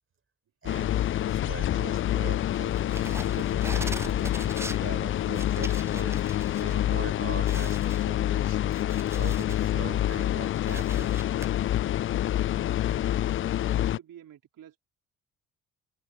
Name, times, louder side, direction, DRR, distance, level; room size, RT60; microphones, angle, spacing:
voice 1, 0.6-8.6 9.1-11.2, right 5 dB, 30° right, 5.4 m, -42 dB
sound 1, 0.7-14.0, left 12 dB, 35° left, 0.4 m, -27 dB
sound 2, 2.8-6.7 7.1-7.2 7.5-9.6 10.1-11.5, right 1 dB, 5° right, 1.1 m, -42 dB
voice 2, 13.6-14.8, right 10 dB, 55° right, 3.8 m, -49 dB
open air
figure-of-eight pair, 45°, 39 cm